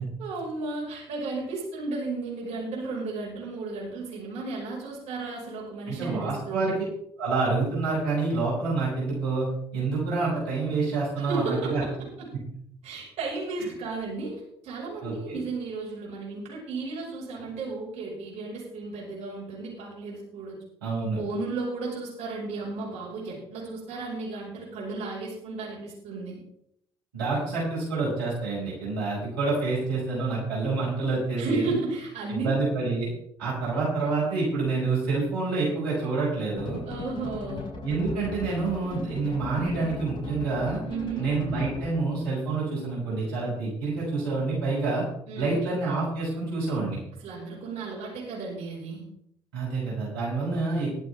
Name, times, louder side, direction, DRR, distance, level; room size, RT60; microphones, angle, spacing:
voice 1, 0.2-6.7 11.2-12.3 12.8-20.6 21.1-26.4 31.4-32.5 36.9-37.7 40.9-41.3 45.3-45.7 47.2-49.1, right 3 dB, 65° right, -3 dB, 5.6 m, -34 dB
voice 2, 5.9-6.7 7.2-9.5 9.7-11.8 13.6-13.7 15.0-15.4 20.8-21.2 27.1-31.7 32.3-33.1 33.4-36.8 37.8-40.8 41.2-45.0 45.3-47.0 49.5-50.9, right 3 dB, 90° right, -6 dB, 6.3 m, -27 dB
sound 1, 36.6-42.1, left 3 dB, 40° left, 6.7 m, -38 dB
22.0 x 8.3 x 3.6 m, 0.71 s
hypercardioid pair, 50°, 12 cm